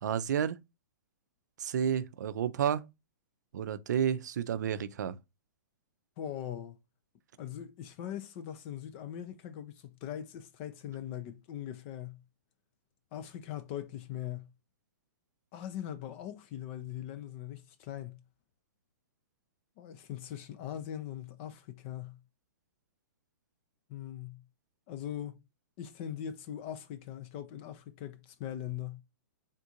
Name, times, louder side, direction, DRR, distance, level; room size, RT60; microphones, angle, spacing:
voice 1, 0.0-0.6 1.6-2.8 3.5-5.2, right 8 dB, 70° right, 0.4 m, -31 dB
voice 2, 6.2-6.8 7.4-12.2 13.1-14.5 15.5-18.2 19.8-22.2 23.9-24.4 24.9-25.3 25.8-29.0, left 10 dB, 40° left, 0.4 m, -41 dB
3.6 x 2.5 x 2.7 m
hypercardioid pair, 130°, 10 cm